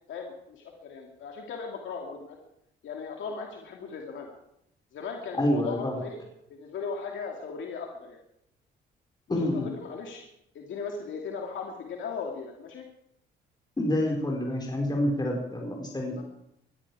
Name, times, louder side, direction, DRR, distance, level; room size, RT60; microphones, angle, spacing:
voice 1, 0.1-2.4 2.8-4.3 4.9-6.2 6.5-8.2 9.3-10.2 10.5-12.9 16.1-16.2, left 5 dB, 75° left, 1 dB, 2.5 m, -38 dB
voice 2, 5.4-6.0 9.3-9.7 13.8-16.2, left 1 dB, 20° left, 0 dB, 4.8 m, -27 dB
21.0 x 13.5 x 4.9 m, 0.76 s
cardioid pair, 90°, 20 cm